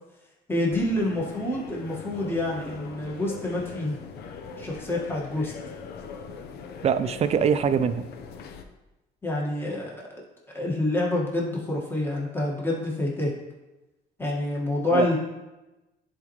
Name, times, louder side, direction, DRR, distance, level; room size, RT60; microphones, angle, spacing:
voice 1, 0.5-4.0 4.6-5.5 9.2-10.0 10.5-13.3 14.2-15.2, left 1 dB, 15° left, -3 dB, 1.8 m, -27 dB
sound 1, 0.7-8.6, left 5 dB, 75° left, 0.7 m, -41 dB
voice 2, 6.8-8.0 14.9-15.1, right 7 dB, 40° right, 11 dB, 0.5 m, -23 dB
10.5 x 4.3 x 3.2 m, 1.0 s
cardioid pair, 110°, 17 cm